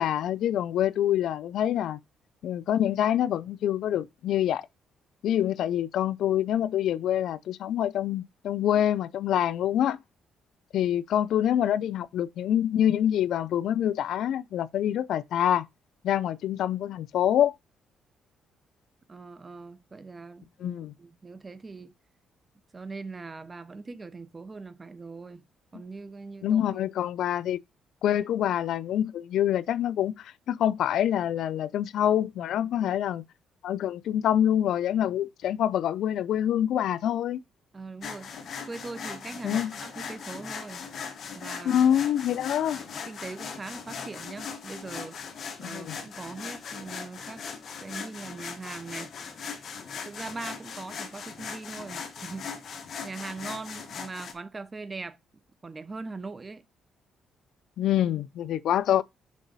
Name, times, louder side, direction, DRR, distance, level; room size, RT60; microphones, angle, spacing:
voice 1, 0.0-2.0 2.4-4.7 5.2-10.0 10.7-15.7 16.0-17.5 20.6-20.9 26.4-27.6 28.0-33.2 33.6-37.4 39.4-39.7 41.6-42.8 45.6-46.0 57.8-59.0, left 10 dB, 70° left, 0.3 m, -26 dB
voice 2, 19.1-21.9 22.7-25.4 25.7-26.8 32.7-33.0 37.7-40.8 41.3-41.8 43.0-45.2 45.6-47.4 47.8-49.2 50.0-52.5 53.0-55.2 55.6-56.6, right 3 dB, 20° right, 0.7 m, -41 dB
sound 1, 38.0-54.3, left 6 dB, 45° left, 1.4 m, -39 dB
6.2 x 3.9 x 5.3 m
cardioid pair, 150°, 0 cm